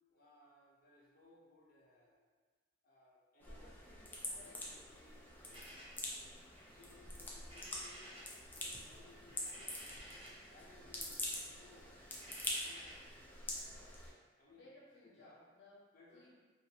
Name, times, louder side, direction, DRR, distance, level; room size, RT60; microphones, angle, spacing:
voice 1, 0.1-2.2 2.8-3.7 4.2-6.4 6.8-9.8 10.2-13.0 13.5-14.1 14.4-14.7 15.0-15.5 15.9-16.3, left 2 dB, 50° left, -5 dB, 0.7 m, -64 dB
sound 1, 3.4-14.1, left 1 dB, 10° left, 0.3 m, -46 dB
voice 2, 3.5-4.8 14.5-15.8 16.1-16.3, left 2 dB, 75° left, -7 dB, 1.0 m, -61 dB
sound 2, 5.5-8.4 8.7-10.5 10.8-13.1, equal, 30° right, 0.7 m, -55 dB
2.5 x 2.5 x 2.8 m, 1.4 s
head